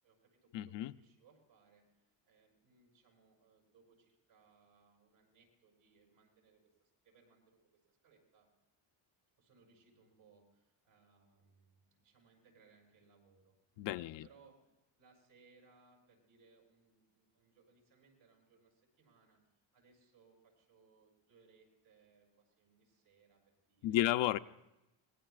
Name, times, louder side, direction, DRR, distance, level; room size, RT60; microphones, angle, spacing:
voice 1, 0.0-7.6 7.9-8.5 9.4-14.7 15.0-19.4 19.7-24.0, right 4 dB, 75° right, 7.8 m, -68 dB
voice 2, 0.5-0.9 13.8-14.3 23.8-24.4, left 14 dB, 60° left, 0.6 m, -32 dB
25.5 x 21.0 x 2.4 m
cardioid pair, 100°, 50 cm